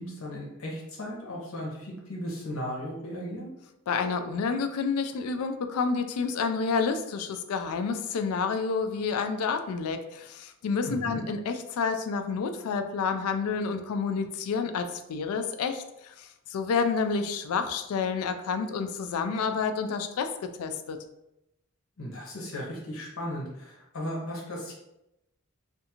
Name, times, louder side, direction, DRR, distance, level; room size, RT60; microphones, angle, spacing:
voice 1, 0.0-3.5 10.9-11.2 22.0-24.7, equal, 75° left, -2 dB, 0.8 m, -36 dB
voice 2, 3.9-20.3 20.6-21.0, left 5 dB, 90° left, 8 dB, 0.3 m, -29 dB
2.5 x 2.4 x 2.8 m, 0.86 s
head